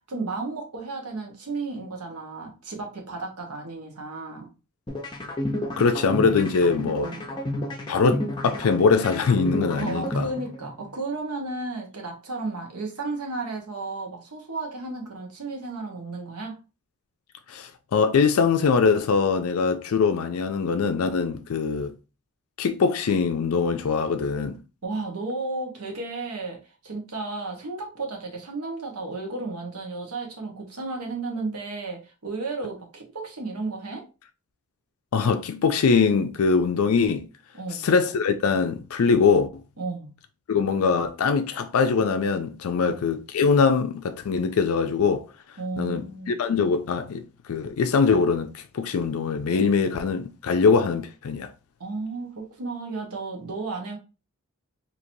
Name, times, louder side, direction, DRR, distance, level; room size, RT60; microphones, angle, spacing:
voice 1, 0.1-4.5 7.0-7.3 9.7-16.6 24.8-34.0 37.5-37.9 39.8-40.1 42.8-43.0 45.6-46.4 51.8-54.0, right 3 dB, 85° right, 1.2 m, -33 dB
sound 1, 4.9-10.9, left 1 dB, 20° left, 0.7 m, -31 dB
voice 2, 5.8-7.1 7.9-10.3 17.5-21.9 22.6-24.6 35.1-37.3 37.7-39.5 40.5-45.2 45.8-47.2 47.5-51.5, left 5 dB, 70° left, 0.4 m, -22 dB
4.4 x 2.9 x 2.6 m
head